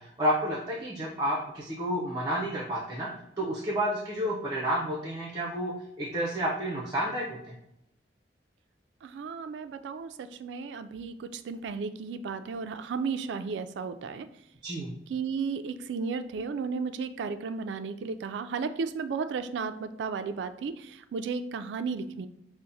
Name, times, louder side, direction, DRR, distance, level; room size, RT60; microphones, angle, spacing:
voice 1, 0.0-3.1 3.4-7.5 14.6-14.9, right 1 dB, 25° right, -3 dB, 0.6 m, -30 dB
voice 2, 9.0-14.3 15.1-22.3, right 5 dB, 90° right, 10 dB, 0.3 m, -34 dB
5.7 x 2.1 x 2.6 m, 0.80 s
head